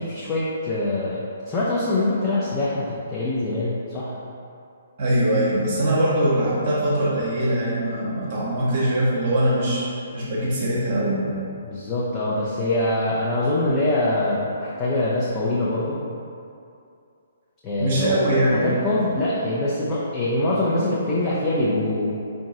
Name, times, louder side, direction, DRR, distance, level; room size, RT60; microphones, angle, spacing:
voice 1, 0.0-4.1 11.6-16.0 17.6-18.2 18.5-22.2, left 2 dB, 20° left, -8 dB, 0.5 m, -24 dB
voice 2, 5.0-9.9 10.1-11.3 17.8-18.7, right 1 dB, 40° right, -6 dB, 0.8 m, -22 dB
4.7 x 2.6 x 3.7 m, 2.5 s
figure-of-eight pair, 125°, 0 cm